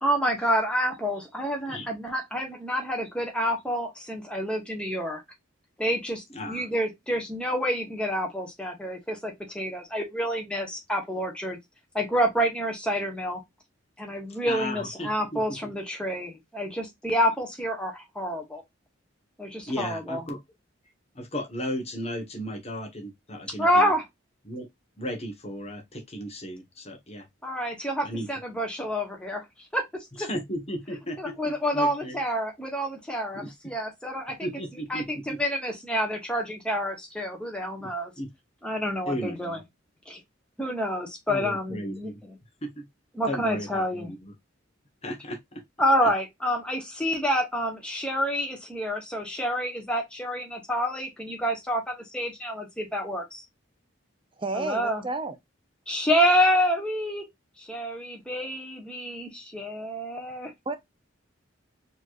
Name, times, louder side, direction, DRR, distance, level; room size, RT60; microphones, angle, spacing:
voice 1, 0.0-5.2 5.8-11.6 11.9-13.4 14.0-18.6 19.4-20.2 23.6-24.0 27.4-29.4 29.7-29.8 30.2-30.3 31.2-34.4 34.9-38.1 38.6-39.6 40.1-40.2 40.6-42.1 43.1-44.1 45.8-53.4 54.5-55.0 55.9-57.2 57.6-60.5, equal, 5° left, 1.3 m, -28 dB
voice 2, 6.3-6.7 14.4-15.7 19.7-20.4 21.1-23.9 24.4-24.7 25.0-27.2 28.0-28.3 30.2-32.2 33.3-33.5 34.4-35.4 37.8-37.9 38.2-38.3 39.1-39.6 41.3-42.2 42.6-42.8 43.3-44.3 45.0-45.6, equal, 30° left, 1.2 m, -35 dB
voice 3, 54.4-55.4 60.7-60.8, right 3 dB, 25° right, 0.6 m, -31 dB
4.3 x 3.1 x 2.5 m
head